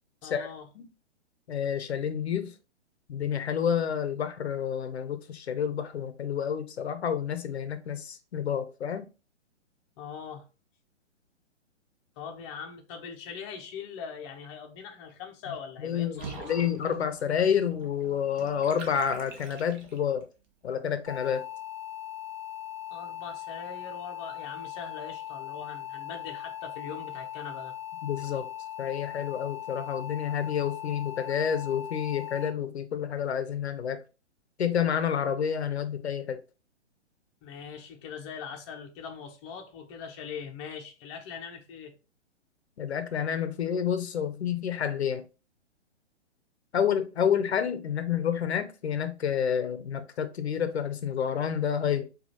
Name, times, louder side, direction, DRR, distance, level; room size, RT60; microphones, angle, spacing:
voice 1, 0.2-0.7 10.0-10.5 12.2-16.5 22.9-27.7 35.2-35.4 37.4-41.9, left 6 dB, 25° left, 0.6 m, -41 dB
voice 2, 1.5-2.5 3.1-9.1 15.8-20.3 20.6-21.4 28.0-28.5 28.8-34.0 34.6-36.4 42.8-45.2 46.7-52.0, left 8 dB, 65° left, 0.6 m, -29 dB
Water / Bathtub (filling or washing), 16.1-20.2, right 5 dB, 40° right, 0.9 m, -46 dB
sound 1, 21.1-32.5, left 11 dB, 25° right, 1.8 m, -39 dB
4.8 x 2.4 x 2.8 m
figure-of-eight pair, 120°, 36 cm